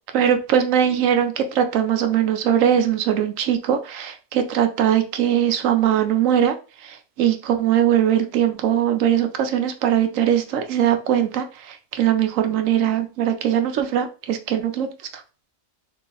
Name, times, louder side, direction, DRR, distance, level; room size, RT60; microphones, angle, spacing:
voice 1, 0.1-6.6 6.8-15.2, right 9 dB, 75° right, 7 dB, 1.0 m, -21 dB
3.3 x 2.9 x 3.7 m, 0.34 s
omnidirectional pair, 1.4 m